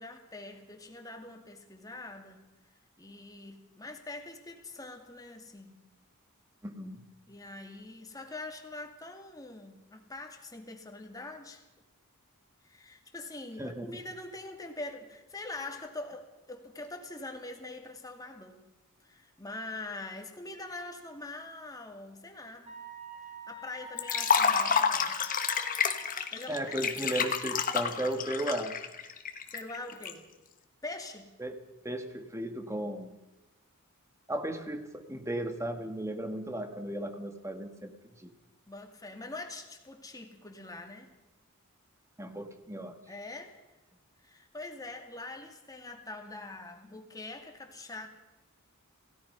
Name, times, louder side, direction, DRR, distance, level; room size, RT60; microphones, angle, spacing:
voice 1, 0.0-2.4 3.0-5.9 7.3-11.7 12.6-18.7 19.0-22.8 23.2-25.2 26.3-26.8 29.5-30.3 30.8-31.3 38.7-41.1 43.1-43.6 44.2-48.1, left 2 dB, 15° left, 3 dB, 2.5 m, -44 dB
voice 2, 6.6-7.0 13.6-13.9 26.5-28.8 31.4-31.6 31.8-33.2 34.3-38.3 42.2-43.0, right 1 dB, 15° right, 7 dB, 1.8 m, -35 dB
Wind instrument woodwind instrument, 22.7-26.1, right 3 dB, 30° right, 4.7 m, -46 dB
Liquid, 24.0-30.1, left 6 dB, 40° left, 1.6 m, -29 dB
27.5 x 17.0 x 5.6 m, 1.1 s
head